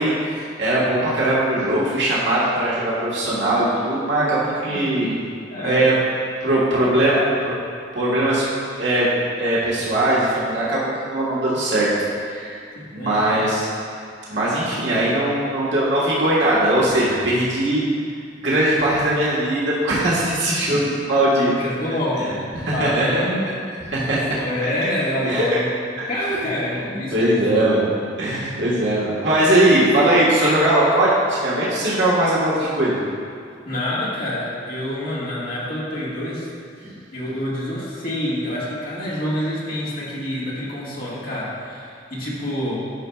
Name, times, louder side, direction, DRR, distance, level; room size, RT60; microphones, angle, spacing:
voice 1, 0.0-5.1 5.6-5.9 6.4-7.2 7.5-7.6 7.9-8.4 8.7-9.1 9.4-11.9 12.3-12.6 12.9-13.7 14.3-17.9 18.4-21.5 22.6-23.2 23.9-24.2 25.2-25.4 26.0-26.1 27.1-27.9 28.2-33.0, right 1 dB, 85° right, -7 dB, 1.4 m, -20 dB
voice 2, 4.6-5.2 5.5-6.0 6.5-7.3 12.7-13.4 20.7-20.8 21.6-22.3 22.7-23.4 23.9-27.9 33.6-36.5 36.8-42.8, left 1 dB, 55° left, -7 dB, 1.7 m, -27 dB
10.5 x 5.6 x 2.3 m, 2.3 s
head